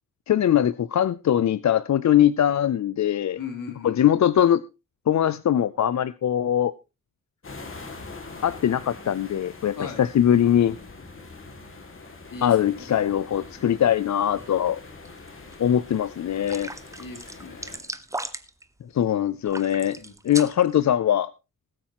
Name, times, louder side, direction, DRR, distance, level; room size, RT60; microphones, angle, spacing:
voice 1, 0.3-3.4 3.8-4.6 5.1-6.7 8.4-10.8 12.4-14.8 15.6-16.7 18.9-20.0 20.2-21.3, left 10 dB, 60° left, 0.5 m, -21 dB
voice 2, 3.4-3.9 9.8-10.0 12.3-12.6 13.1-13.2 17.0-17.8 19.9-20.1, left 5 dB, 80° left, 3.4 m, -38 dB
sound 1, 7.4-17.8, left 3 dB, 40° left, 2.4 m, -43 dB
sound 2, 12.8-16.1 16.5-16.6, right 1 dB, 35° right, 4.3 m, -53 dB
sound 3, 15.0-15.5 15.9-16.0 16.4-18.6 19.4-20.8, right 2 dB, 10° right, 0.8 m, -36 dB
20.0 x 8.6 x 2.9 m
wide cardioid pair, 180°, 32 cm